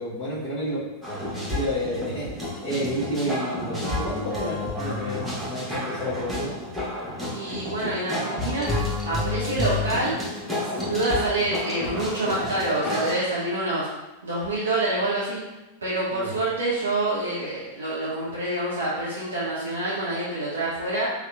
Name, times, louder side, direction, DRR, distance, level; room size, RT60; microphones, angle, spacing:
voice 1, 0.0-6.6 16.1-16.3, equal, 35° left, -11 dB, 0.8 m, -30 dB
sound 1, 1.0-13.1, left 2 dB, 5° right, 0.7 m, -30 dB
voice 2, 7.3-8.7 9.0-10.2 10.6-13.9 14.2-15.4 15.8-21.1, right 2 dB, 70° right, -8 dB, 0.5 m, -27 dB
2.7 x 2.0 x 2.2 m, 1.1 s
figure-of-eight pair, 90°, 0 cm